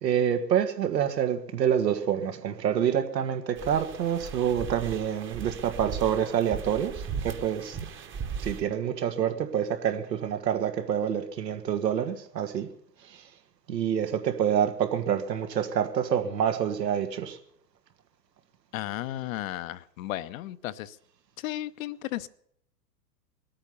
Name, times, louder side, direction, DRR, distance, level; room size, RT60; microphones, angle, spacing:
voice 1, 0.0-7.8 8.4-12.7 13.1-13.2 13.7-17.4, right 9 dB, 75° right, 1.7 m, -27 dB
sound 1, 3.6-8.6, right 6 dB, 25° right, 1.3 m, -37 dB
voice 2, 18.7-21.0 21.4-22.3, left 15 dB, 55° left, 0.8 m, -34 dB
21.0 x 8.9 x 6.9 m
hypercardioid pair, 105°, 49 cm